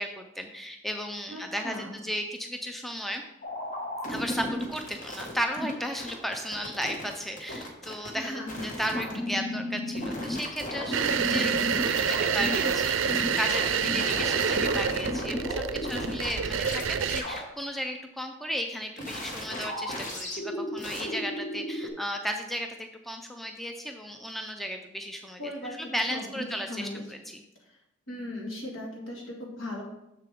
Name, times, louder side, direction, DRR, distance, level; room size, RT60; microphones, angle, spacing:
voice 1, 0.0-3.2 4.1-27.4, equal, ahead, 4 dB, 0.4 m, -35 dB
voice 2, 1.3-2.0 8.1-9.2 25.4-27.0 27.7-27.8 28.1-29.9, left 1 dB, 75° left, -1 dB, 1.9 m, -38 dB
sound 1, 3.4-5.7 6.0-7.1 7.4-8.1 8.5-12.8 13.0-16.3 16.6-16.8 17.1-17.4 19.0-21.9, left 1 dB, 40° left, 1.2 m, -34 dB
sound 2, 10.9-17.2, right 7 dB, 65° right, 0.4 m, -27 dB
6.7 x 6.6 x 3.6 m, 0.87 s
head